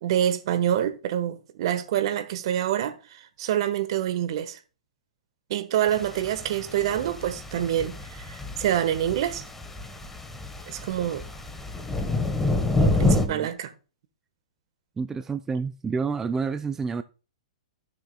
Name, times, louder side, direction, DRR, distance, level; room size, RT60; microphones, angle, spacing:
voice 1, 0.0-3.0 3.4-4.6 5.5-9.4 10.7-11.2 12.8-13.7, right 11 dB, 55° right, 1.3 m, -26 dB
sound 1, 5.9-13.3, left 2 dB, 10° left, 1.2 m, -28 dB
voice 2, 13.1-13.5 15.0-17.0, right 5 dB, 10° right, 0.4 m, -29 dB
16.0 x 6.7 x 2.3 m
hypercardioid pair, 115°, 3 cm